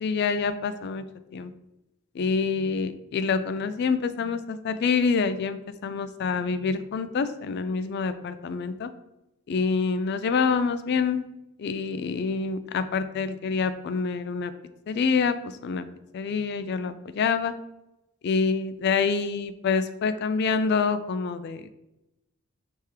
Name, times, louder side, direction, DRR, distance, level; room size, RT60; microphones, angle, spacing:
voice 1, 0.0-1.0 1.3-1.5 2.1-8.9 9.5-11.3 11.6-14.5 14.9-15.9 16.1-17.5 18.2-21.7, left 5 dB, 50° left, 12 dB, 0.3 m, -26 dB
4.8 x 3.5 x 2.9 m, 0.92 s
head